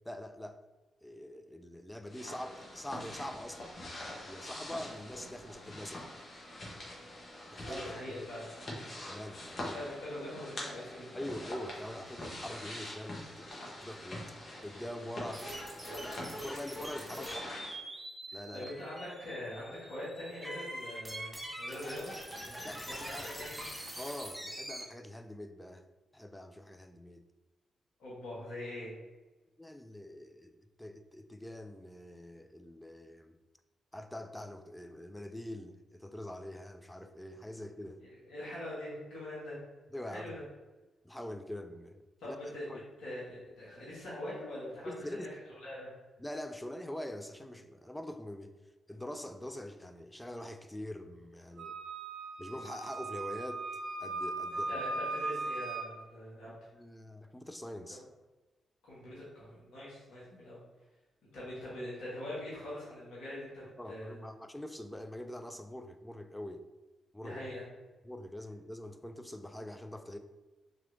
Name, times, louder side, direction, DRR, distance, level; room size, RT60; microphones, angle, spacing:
voice 1, 0.1-0.6 1.0-3.8 4.3-6.1 7.5-7.9 8.2-8.3 9.0-9.8 11.1-14.3 14.6-15.5 15.7-17.4 18.3-18.7 22.5-23.5 24.0-25.8 26.1-27.2 29.6-33.4 33.9-38.0 39.9-40.3 41.0-42.4 42.7-42.8 44.9-45.3 46.2-48.5 48.9-51.8 52.4-53.6 54.0-54.7 56.5-58.0 63.8-66.6 67.1-67.4 68.0-70.2, left 1 dB, 10° left, 8 dB, 0.4 m, -44 dB
sound 1, 2.1-17.7, left 1 dB, 50° left, 1.0 m, -45 dB
voice 2, 7.6-8.4 9.7-11.2 18.3-23.5 28.0-28.9 38.0-39.6 40.0-40.4 42.2-45.3 45.6-45.9 54.5-56.5 57.9-58.0 58.8-60.6 61.3-64.2 67.2-67.7, left 1 dB, 75° left, -9 dB, 1.2 m, -43 dB
sound 2, 15.3-24.8, equal, 10° right, 0.9 m, -44 dB
Wind instrument woodwind instrument, 51.6-55.9, right 2 dB, 70° right, 0.4 m, -38 dB
2.9 x 2.9 x 2.6 m, 1.1 s
hypercardioid pair, 40°, 0 cm